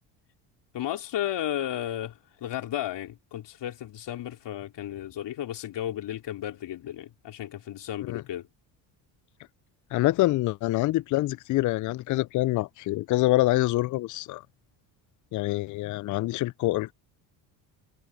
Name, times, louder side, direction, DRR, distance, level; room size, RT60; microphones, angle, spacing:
voice 1, 0.7-8.5, left 12 dB, 60° left, 3.1 m, -34 dB
voice 2, 9.9-14.4 15.3-16.9, left 17 dB, 40° left, 0.4 m, -25 dB
supercardioid pair, 70°, 48 cm